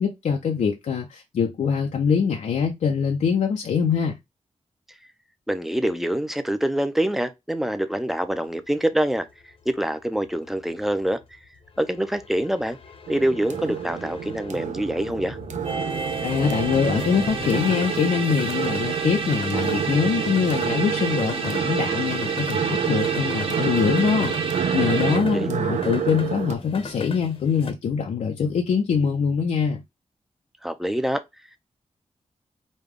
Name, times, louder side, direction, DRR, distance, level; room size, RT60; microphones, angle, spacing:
voice 1, 0.0-4.2 16.2-24.4 24.7-29.8, left 6 dB, 85° left, 0.6 m, -23 dB
voice 2, 5.5-9.3 9.7-11.2 11.8-12.8 13.1-15.4 25.1-25.6 30.6-31.2, right 1 dB, ahead, 0.5 m, -25 dB
sound 1, 8.2-27.7, left 3 dB, 50° left, 0.9 m, -40 dB
sound 2, 13.1-26.5, right 8 dB, 85° right, 0.5 m, -28 dB
sound 3, 15.6-25.2, right 4 dB, 50° right, 1.2 m, -30 dB
5.2 x 2.3 x 3.5 m
wide cardioid pair, 140°, 12 cm